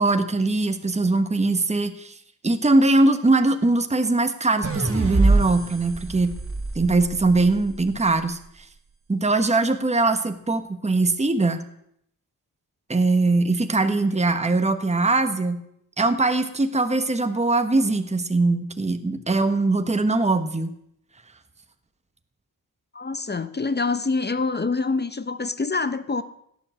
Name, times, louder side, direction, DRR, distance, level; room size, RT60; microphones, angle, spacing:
voice 1, 0.0-2.2 2.4-6.4 6.7-8.4 9.1-11.6 12.9-15.6 16.0-20.7, right 2 dB, 20° right, 1.3 m, -21 dB
sound 1, 4.6-7.9, right 3 dB, 35° right, 2.4 m, -24 dB
voice 2, 22.9-26.2, left 4 dB, 25° left, 0.8 m, -26 dB
17.0 x 10.5 x 7.7 m
wide cardioid pair, 130°, 37 cm